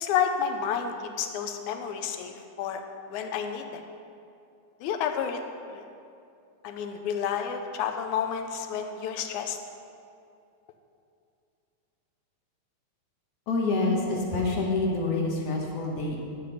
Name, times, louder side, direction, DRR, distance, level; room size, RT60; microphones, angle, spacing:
voice 1, 0.0-2.8 3.1-3.8 4.8-5.4 5.7-5.8 6.6-9.6, left 7 dB, 80° left, 6 dB, 2.0 m, -30 dB
voice 2, 13.5-16.2, left 3 dB, 60° left, -1 dB, 2.0 m, -27 dB
11.0 x 6.4 x 5.5 m, 2.5 s
omnidirectional pair, 3.5 m